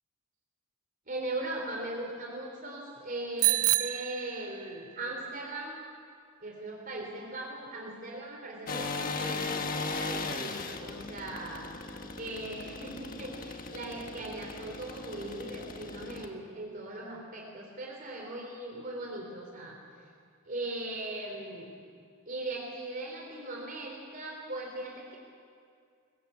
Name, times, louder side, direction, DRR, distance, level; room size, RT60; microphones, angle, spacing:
voice 1, 1.1-5.8 6.4-11.6 12.2-20.1 20.5-21.7 22.3-25.2, right 2 dB, 40° right, 0 dB, 3.6 m, -39 dB
Bicycle bell, 3.4-5.0, right 16 dB, 90° right, 0.7 m, -28 dB
sound 1, 8.7-16.3, left 3 dB, 40° left, 1.5 m, -37 dB
22.0 x 21.5 x 8.5 m, 2.4 s
head